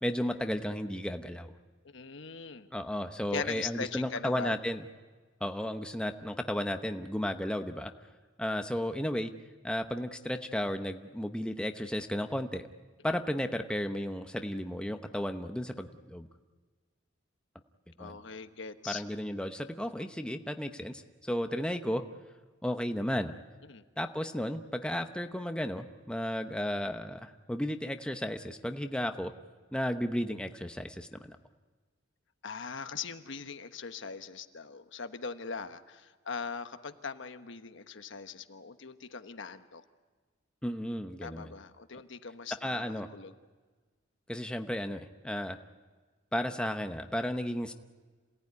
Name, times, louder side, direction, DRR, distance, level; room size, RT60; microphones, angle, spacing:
voice 1, 0.0-1.5 2.7-4.8 5.4-7.9 8.4-9.3 9.6-12.7 13.0-16.3 18.0-18.2 18.9-22.0 22.6-23.3 24.0-29.3 29.7-31.4 40.6-41.5 42.6-43.1 44.3-45.6 46.3-47.7, equal, 5° left, 6 dB, 0.9 m, -34 dB
voice 2, 1.9-2.7 3.3-4.5 18.0-19.0 23.7-23.8 32.4-39.8 41.2-43.3, left 5 dB, 65° left, 9 dB, 1.2 m, -40 dB
27.0 x 17.5 x 9.6 m, 1.4 s
head